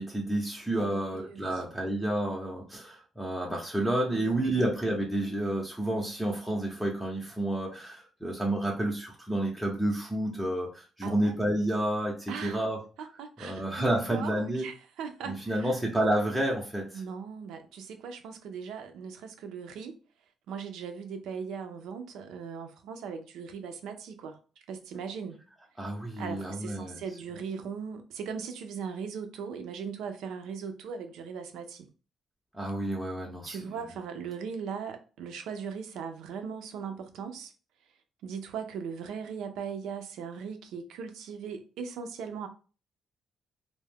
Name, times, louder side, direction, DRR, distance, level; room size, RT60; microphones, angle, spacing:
voice 1, 0.0-12.8 13.4-14.7 15.3-17.0 25.8-27.0 32.5-33.6, right 1 dB, ahead, 0.6 m, -30 dB
voice 2, 0.8-1.6 4.1-4.6 11.0-11.3 12.3-12.7 13.0-15.7 16.9-20.0 20.5-24.4 24.7-25.4 26.2-31.9 33.5-37.5 38.2-42.5, right 6 dB, 85° right, 0.4 m, -39 dB
2.3 x 2.1 x 3.3 m
cardioid pair, 90°, 0 cm